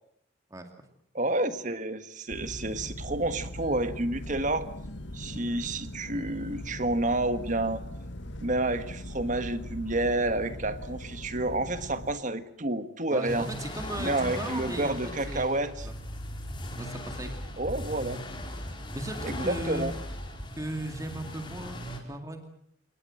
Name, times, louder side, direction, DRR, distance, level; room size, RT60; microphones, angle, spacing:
voice 1, 1.1-4.7 5.1-7.8 8.4-13.5 14.0-15.9 17.6-18.2 19.2-19.9, right 2 dB, 40° right, 11 dB, 1.5 m, -29 dB
sound 1, 2.3-12.1, left 1 dB, 60° left, 1.7 m, -40 dB
voice 2, 13.1-15.9 16.8-17.3 18.9-19.9 20.6-22.4, right 1 dB, 15° right, 5 dB, 2.4 m, -37 dB
sound 2, 13.3-22.0, left 1 dB, 25° left, 4.3 m, -38 dB
29.5 x 19.0 x 7.8 m, 0.70 s
head